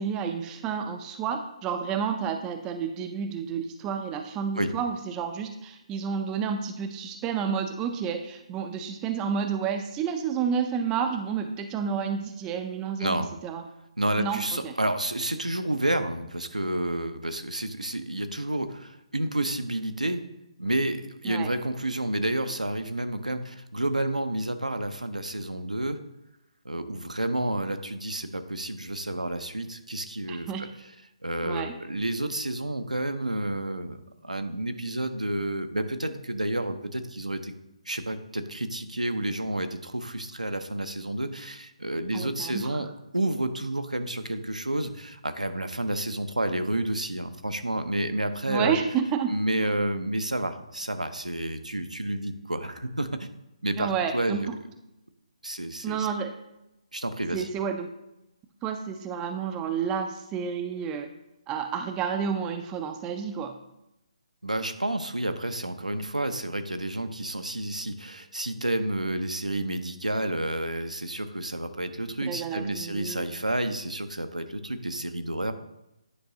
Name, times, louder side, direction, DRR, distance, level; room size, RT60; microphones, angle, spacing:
voice 1, 0.0-13.6 14.2-14.7 21.2-21.5 30.3-30.6 31.4-31.8 42.1-42.7 48.5-49.3 53.8-54.6 55.8-56.3 57.3-57.9 58.6-61.1 61.5-63.6 72.2-73.3, right 7 dB, 15° right, 6 dB, 0.4 m, -30 dB
voice 2, 13.0-13.3 14.0-20.3 20.6-26.0 26.6-30.5 31.2-34.0 34.2-37.5 37.9-42.9 43.1-48.8 49.3-53.3 53.6-54.5 55.4-56.1 56.9-57.5 64.4-75.5, right 1 dB, 85° right, 8 dB, 0.6 m, -30 dB
9.8 x 5.3 x 2.7 m, 0.89 s
figure-of-eight pair, 140°, 4 cm